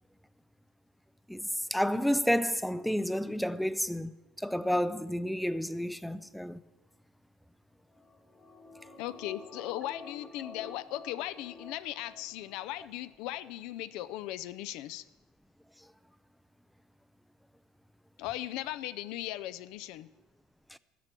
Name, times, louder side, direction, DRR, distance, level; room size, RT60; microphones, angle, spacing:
voice 1, 1.3-4.1 4.4-6.6 20.7-20.8, equal, ahead, 0.4 m, -30 dB
sound 1, 7.9-12.7 13.0-13.1, left 3 dB, 20° left, 1.2 m, -50 dB
voice 2, 9.0-15.0 18.2-20.1, left 14 dB, 65° left, 0.4 m, -38 dB
13.5 x 11.0 x 4.5 m
cardioid pair, 150°, 0 cm